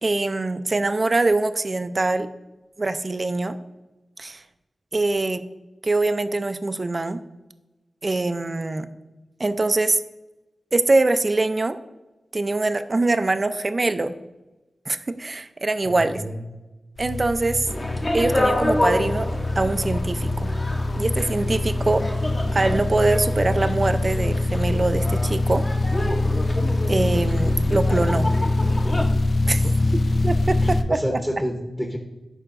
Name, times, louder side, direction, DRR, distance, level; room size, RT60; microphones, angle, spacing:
voice 1, 0.0-2.3 2.8-3.6 4.2-4.4 4.9-5.4 5.8-7.2 8.0-8.9 9.4-10.0 10.7-11.8 12.3-14.2 14.9-16.2 17.0-17.7 18.1-20.5 20.9-22.1 22.5-25.6 26.9-28.3 29.5-29.6 30.2-31.2, right 2 dB, 40° right, 10 dB, 0.4 m, -23 dB
voice 2, 15.8-16.4 29.4-29.9 30.5-32.0, equal, 5° left, 2 dB, 0.9 m, -30 dB
sound 1, 17.0-30.8, left 2 dB, 50° left, 0.5 m, -24 dB
sound 2, 17.7-29.1, left 1 dB, 30° left, 0.8 m, -29 dB
11.5 x 4.4 x 2.5 m, 1.1 s
wide cardioid pair, 80°, 0 cm